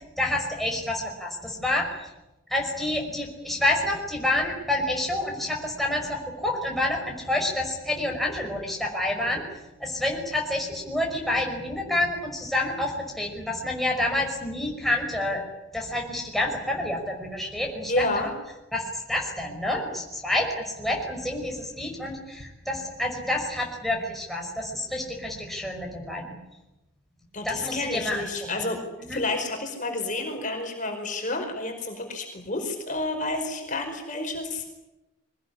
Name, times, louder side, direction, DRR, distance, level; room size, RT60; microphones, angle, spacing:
voice 1, 0.2-2.1 2.5-9.4 9.8-15.4 15.7-18.3 18.7-26.3 27.4-28.2 28.5-28.6 29.1-29.2, left 1 dB, ahead, 0 dB, 5.7 m, -28 dB
voice 2, 17.9-18.3 27.3-28.8 29.1-34.7, left 2 dB, 35° left, 3 dB, 4.9 m, -30 dB
23.5 x 20.0 x 10.0 m, 0.98 s
head